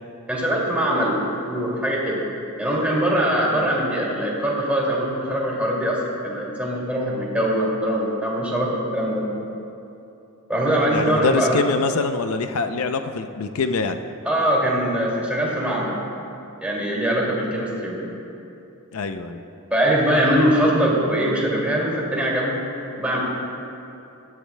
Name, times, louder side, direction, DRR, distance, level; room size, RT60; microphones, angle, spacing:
voice 1, 0.3-2.2 2.6-9.2 10.5-11.6 14.3-16.0 16.6-18.1 19.7-22.6 22.9-23.2, right 1 dB, 5° right, -5 dB, 2.4 m, -22 dB
voice 2, 10.9-14.0 18.9-19.4, left 4 dB, 65° left, 8 dB, 0.5 m, -24 dB
18.0 x 13.5 x 2.2 m, 2.8 s
head